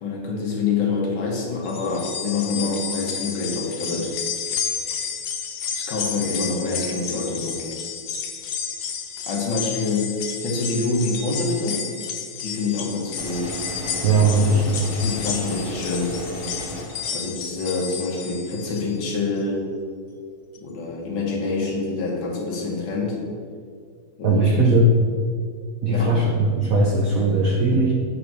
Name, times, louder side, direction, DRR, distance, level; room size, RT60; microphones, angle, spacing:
voice 1, 0.0-4.1 5.7-7.7 9.3-10.2 10.4-11.8 12.4-13.5 14.5-16.1 17.1-19.6 20.6-23.2 24.2-24.5 25.9-26.2, left 3 dB, 65° left, -2 dB, 2.0 m, -26 dB
sound 1, 1.6-19.0 19.4-19.5 20.6-20.7, left 6 dB, 90° left, 1.8 m, -31 dB
sound 2, 13.2-17.2, equal, 30° left, 2.0 m, -34 dB
voice 2, 14.0-14.9 24.2-25.0 25.8-27.9, right 2 dB, 75° right, 0 dB, 0.7 m, -19 dB
7.7 x 3.8 x 6.0 m, 2.1 s
omnidirectional pair, 2.3 m